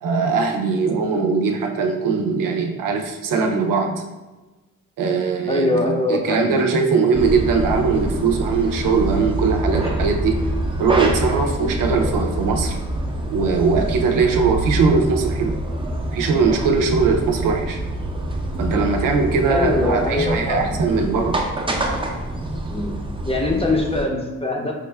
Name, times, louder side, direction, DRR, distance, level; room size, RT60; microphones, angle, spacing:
voice 1, 0.0-4.0 5.0-10.4 10.8-12.8 13.3-15.6 16.1-17.8 18.6-21.4, right 4 dB, 85° right, 2 dB, 0.6 m, -20 dB
voice 2, 5.5-6.6 9.8-10.0 11.6-11.9 19.5-20.8 22.7-23.0 23.3-24.7, left 2 dB, 20° left, 0 dB, 0.7 m, -23 dB
sound 1, 7.1-24.0, right 1 dB, 15° right, 0.6 m, -26 dB
5.0 x 2.1 x 3.3 m, 1.1 s
cardioid pair, 70°, 32 cm